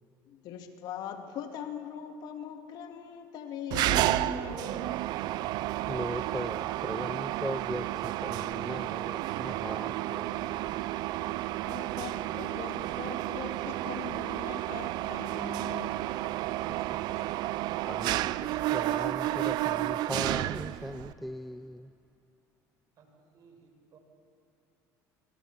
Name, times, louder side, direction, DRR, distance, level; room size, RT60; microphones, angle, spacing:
voice 1, 0.3-5.0 11.7-16.0, left 8 dB, 65° left, 6 dB, 2.3 m, -41 dB
Mechanisms, 3.7-21.1, right 15 dB, 65° right, 0.6 m, -31 dB
voice 2, 5.9-10.9 16.7-17.0 17.8-18.4 18.7-21.9, equal, ahead, 12 dB, 0.6 m, -39 dB
voice 3, 23.0-24.0, right 5 dB, 50° right, 4 dB, 6.2 m, -59 dB
25.5 x 24.5 x 7.3 m, 2.9 s
supercardioid pair, 105°, 8 cm